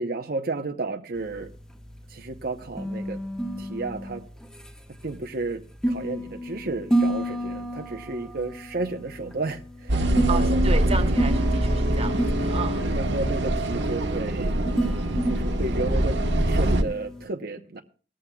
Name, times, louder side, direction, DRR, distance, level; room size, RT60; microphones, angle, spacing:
voice 1, 0.0-1.5 2.1-3.2 3.6-4.2 4.9-10.6 12.9-14.5 15.3-17.8, right 3 dB, 60° right, 0.8 m, -32 dB
sound 1, 1.2-17.3, right 1 dB, 5° left, 1.2 m, -31 dB
sound 2, 9.9-16.8, right 1 dB, 80° right, 1.2 m, -24 dB
voice 2, 10.3-12.9, right 4 dB, 35° right, 1.3 m, -32 dB
19.0 x 14.0 x 2.3 m
head